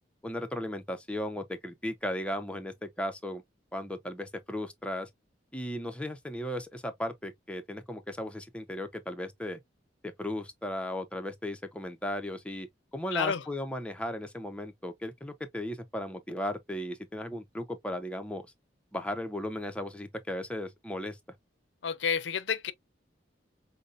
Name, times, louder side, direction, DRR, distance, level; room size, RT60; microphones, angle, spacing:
voice 1, 0.2-3.4 3.7-5.1 5.5-9.6 10.0-12.7 12.9-18.4 18.9-21.2, left 1 dB, 5° left, 0.5 m, -36 dB
voice 2, 13.1-13.4 21.8-22.7, left 6 dB, 70° left, 0.5 m, -30 dB
5.2 x 2.1 x 2.4 m
head